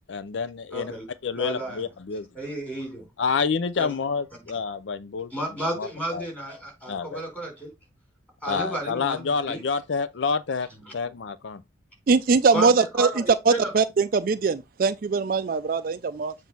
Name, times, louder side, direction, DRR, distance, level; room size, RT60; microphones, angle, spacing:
voice 1, 0.1-0.9 1.2-2.3 3.2-5.3 5.8-6.3 6.9-7.2 8.4-10.7 10.9-11.6, left 5 dB, 75° left, 0.5 m, -28 dB
voice 2, 0.7-1.0 1.3-1.8 2.3-3.0 3.8-3.9 5.3-7.7 8.4-9.6 12.5-13.7, right 1 dB, 10° left, 3.6 m, -32 dB
voice 3, 12.1-16.3, right 4 dB, 50° right, 0.4 m, -22 dB
7.3 x 2.6 x 5.8 m
head